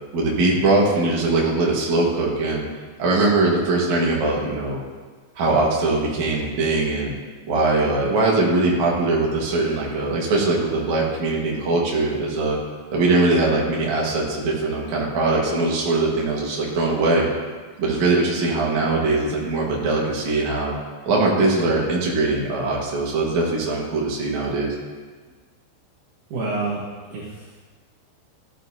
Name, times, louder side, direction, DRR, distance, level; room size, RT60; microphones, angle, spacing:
voice 1, 0.1-2.6 3.0-4.8 5.4-7.1 7.5-12.6 12.9-17.3 17.8-20.7 21.1-24.7, right 2 dB, 65° right, -3 dB, 1.9 m, -21 dB
voice 2, 26.3-26.8 27.1-27.6, right 3 dB, 80° right, -6 dB, 1.8 m, -28 dB
14.0 x 9.6 x 2.8 m, 1.4 s
omnidirectional pair, 5.9 m